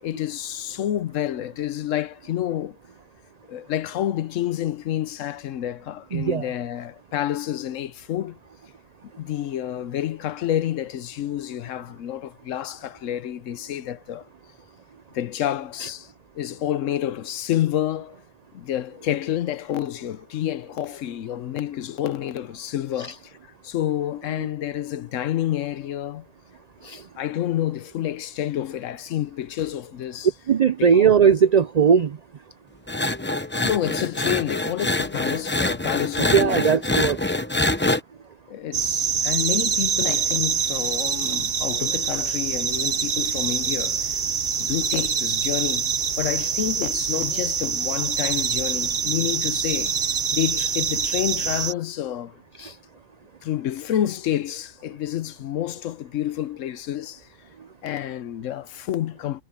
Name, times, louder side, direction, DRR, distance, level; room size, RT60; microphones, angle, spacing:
voice 1, 0.0-2.8 3.5-8.4 9.2-14.3 15.1-16.1 16.3-18.2 18.5-23.3 23.6-26.3 27.2-30.3 30.8-31.1 33.6-36.7 38.5-44.2 44.6-45.9 46.2-49.9 50.3-52.4 53.4-57.3 57.8-59.4, left 11 dB, 75° left, 1.0 m, -29 dB
voice 2, 6.1-6.5 23.0-23.1 24.4-24.5 26.8-27.0 30.5-32.2 36.2-37.2 46.4-46.5 52.6-52.7, right 7 dB, 75° right, 0.3 m, -19 dB
sound 1, 32.9-38.0, left 2 dB, 10° left, 0.7 m, -25 dB
sound 2, 38.7-51.7, right 6 dB, 50° right, 1.0 m, -25 dB
omnidirectional pair, 1.4 m